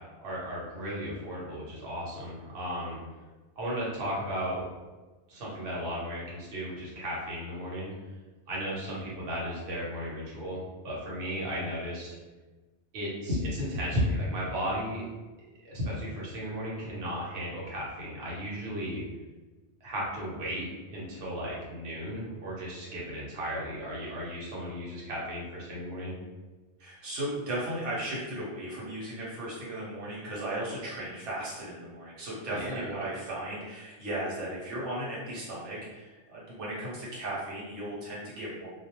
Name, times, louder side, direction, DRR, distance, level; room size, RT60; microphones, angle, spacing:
voice 1, 0.2-3.0 3.6-4.7 5.3-7.9 8.5-12.1 12.9-15.1 15.6-19.0 19.8-26.1 32.5-32.7, equal, 65° right, -6 dB, 1.0 m, -34 dB
voice 2, 26.8-38.7, right 1 dB, 90° right, -7 dB, 1.0 m, -36 dB
2.3 x 2.0 x 2.8 m, 1.2 s
omnidirectional pair, 1.2 m